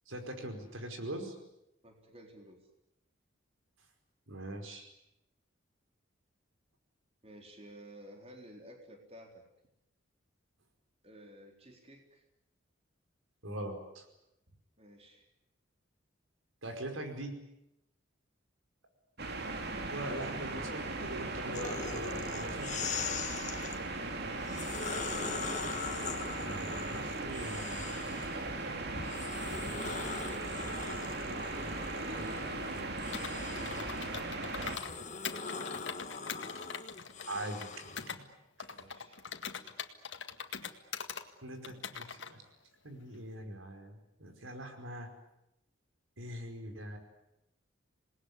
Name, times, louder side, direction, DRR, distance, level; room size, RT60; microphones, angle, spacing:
voice 1, 0.1-1.3 4.3-4.9 13.4-14.0 16.6-17.4 19.9-22.7 26.4-27.9 37.3-38.2 41.4-42.4 42.8-45.1 46.2-47.0, right 1 dB, 90° right, 6 dB, 5.1 m, -42 dB
voice 2, 1.8-2.7 7.2-9.4 11.0-12.2 14.8-15.3 24.4-25.3 28.1-29.3 30.2-30.6 31.9-35.7 36.2-36.6 38.7-39.2, right 1 dB, 30° right, 3 dB, 3.9 m, -53 dB
sound 1, 19.2-34.8, right 2 dB, 55° right, 2.7 m, -38 dB
sound 2, 21.5-23.8 24.4-28.5 28.9-38.1, left 5 dB, 35° left, 1.7 m, -41 dB
Computer keyboard, 33.1-34.9 35.2-38.2 38.6-41.2 41.6-42.3, left 6 dB, 65° left, 1.9 m, -42 dB
27.5 x 20.0 x 9.7 m, 0.87 s
head